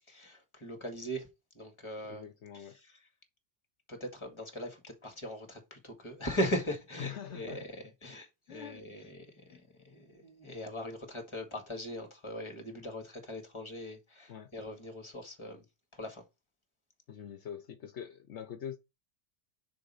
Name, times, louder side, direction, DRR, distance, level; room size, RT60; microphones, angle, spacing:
voice 1, 0.1-1.3 1.5-2.2 2.5-2.9 3.9-9.6 9.8-15.6 15.9-16.2, equal, 25° left, 2.1 m, -39 dB
voice 2, 2.1-2.8 7.0-7.7 8.5-9.1 9.5-9.6 14.3-14.5 17.1-18.8, left 9 dB, 70° left, 1.1 m, -44 dB
6.6 x 4.4 x 5.6 m
omnidirectional pair, 1.2 m